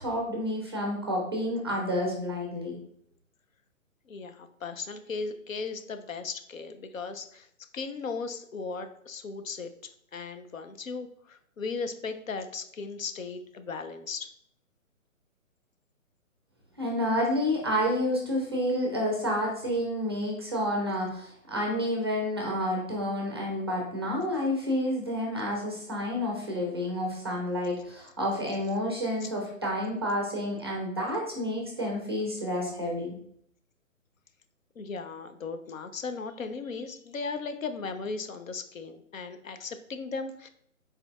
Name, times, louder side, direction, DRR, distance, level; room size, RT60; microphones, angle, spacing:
voice 1, 0.0-2.8 16.8-33.1, equal, 20° right, 0 dB, 0.4 m, -29 dB
voice 2, 4.1-7.5 7.7-9.7 10.1-14.3 29.2-29.3 34.8-40.5, left 4 dB, 75° left, 8 dB, 0.6 m, -37 dB
4.1 x 3.9 x 2.4 m, 0.68 s
figure-of-eight pair, 135°, 41 cm